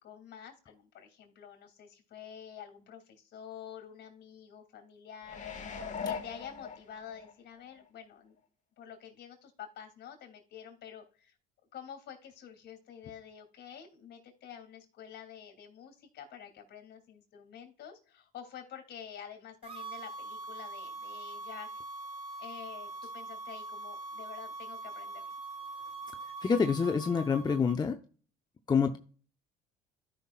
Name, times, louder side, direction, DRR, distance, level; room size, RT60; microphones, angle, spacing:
voice 1, 0.0-5.4 6.0-8.3 8.8-11.3 11.7-21.7 22.4-25.3, left 8 dB, 60° left, 2.9 m, -48 dB
sound 1, 5.2-7.3 7.8-7.9, left 6 dB, 40° left, 1.7 m, -39 dB
sound 2, 19.6-27.8, right 3 dB, 30° right, 3.8 m, -43 dB
voice 2, 26.4-28.0 28.7-29.0, left 5 dB, 20° left, 0.7 m, -27 dB
13.5 x 5.6 x 2.4 m
cardioid pair, 100°, 19 cm